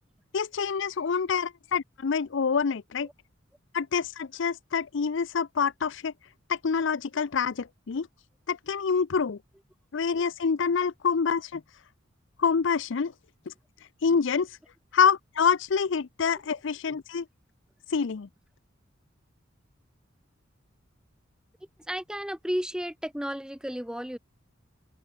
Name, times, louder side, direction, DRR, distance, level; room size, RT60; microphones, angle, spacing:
voice 1, 0.3-3.1 3.7-6.1 6.5-8.1 8.5-9.4 9.9-11.6 12.4-13.1 13.5-13.6 14.0-14.6 14.9-17.2 17.9-18.3, left 6 dB, 65° left, 0.5 m, -26 dB
voice 2, 21.9-24.2, equal, 5° right, 2.3 m, -33 dB
open air
head